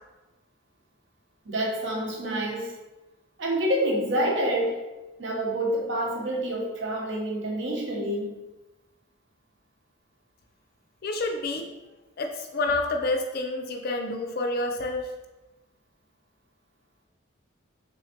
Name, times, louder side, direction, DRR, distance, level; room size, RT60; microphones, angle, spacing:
voice 1, 1.5-2.7 3.4-4.8 5.2-8.3, right 1 dB, 60° right, 0 dB, 0.7 m, -27 dB
voice 2, 11.0-11.7 12.2-15.1, left 2 dB, 45° left, 4 dB, 0.3 m, -28 dB
3.3 x 3.1 x 2.8 m, 1.1 s
head